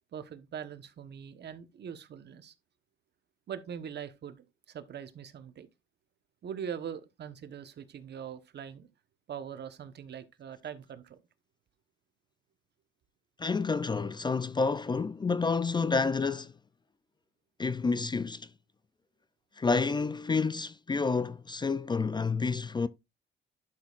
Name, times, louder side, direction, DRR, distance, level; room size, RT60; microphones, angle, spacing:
voice 1, 0.1-2.5 3.5-5.7 6.4-8.9 9.3-11.2, right 8 dB, 60° right, 1.2 m, -42 dB
voice 2, 13.4-16.5 17.6-18.5 19.6-22.9, left 4 dB, 20° left, 0.4 m, -29 dB
11.5 x 6.3 x 2.5 m
cardioid pair, 90°, 20 cm